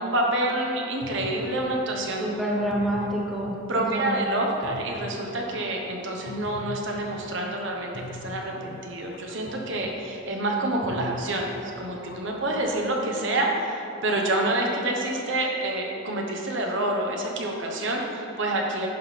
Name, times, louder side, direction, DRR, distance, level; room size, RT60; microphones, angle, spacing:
voice 1, 0.0-2.3 3.7-18.9, right 1 dB, 60° right, 0 dB, 1.0 m, -27 dB
sound 1, 1.0-7.7 7.9-12.9, left 1 dB, 45° left, 0.5 m, -42 dB
voice 2, 2.2-4.3, equal, ahead, -4 dB, 0.9 m, -28 dB
10.5 x 3.7 x 5.8 m, 2.7 s
head